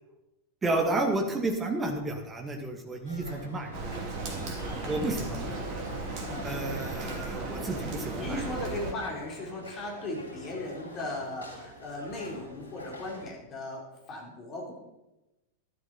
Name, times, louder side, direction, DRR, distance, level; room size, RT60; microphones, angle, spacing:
voice 1, 0.6-3.8 4.9-5.6 6.4-8.4, right 2 dB, 15° right, 4 dB, 2.0 m, -31 dB
sound 1, 3.0-13.3, left 1 dB, 85° right, 3.5 m, -45 dB
Rain, 3.7-8.9, right 3 dB, 40° right, 2.8 m, -36 dB
voice 2, 8.2-14.7, left 2 dB, 30° left, -1 dB, 4.2 m, -37 dB
13.0 x 12.0 x 4.4 m, 0.98 s
figure-of-eight pair, 90°, 0 cm